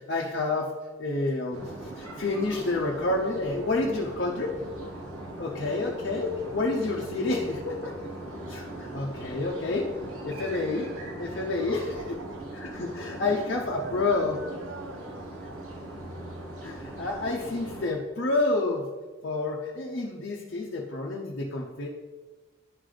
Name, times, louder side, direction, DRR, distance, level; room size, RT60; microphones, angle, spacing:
voice 1, 0.1-1.7 2.0-4.6 5.4-7.9 8.5-9.9 10.2-10.9 11.2-12.2 12.5-14.4 16.6-18.9 19.2-21.9, left 2 dB, 50° left, -1 dB, 0.6 m, -29 dB
sound 1, 1.5-17.9, right 1 dB, 80° right, 1.0 m, -40 dB
voice 2, 11.8-12.4 13.6-15.8, right 4 dB, 60° right, 8 dB, 0.5 m, -42 dB
11.0 x 3.9 x 3.3 m, 1.3 s
head